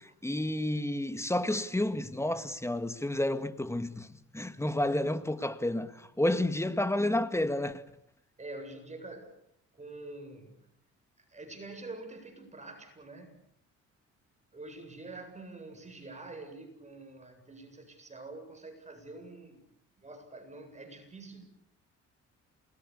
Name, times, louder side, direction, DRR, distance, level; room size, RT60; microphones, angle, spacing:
voice 1, 0.0-7.8, left 1 dB, 10° left, 2.0 m, -30 dB
voice 2, 8.4-9.3 9.7-10.7 11.3-13.4 14.5-19.7 20.0-21.5, right 2 dB, 25° right, 8.0 m, -46 dB
28.0 x 21.0 x 8.5 m
cardioid pair, 90°, 30 cm